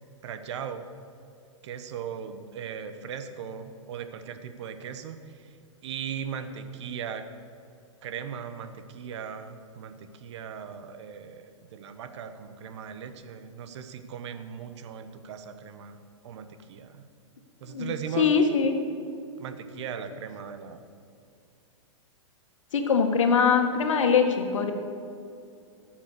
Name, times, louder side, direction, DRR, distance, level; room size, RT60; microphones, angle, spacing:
voice 1, 0.2-0.9 1.6-5.4 5.8-7.3 8.0-16.0 16.2-17.0 17.6-18.3 19.4-20.8, right 7 dB, 60° right, 9 dB, 1.2 m, -38 dB
voice 2, 17.7-18.7 22.7-24.7, left 6 dB, 75° left, 5 dB, 1.7 m, -23 dB
17.0 x 7.3 x 6.8 m, 2.5 s
hypercardioid pair, 120°, 16 cm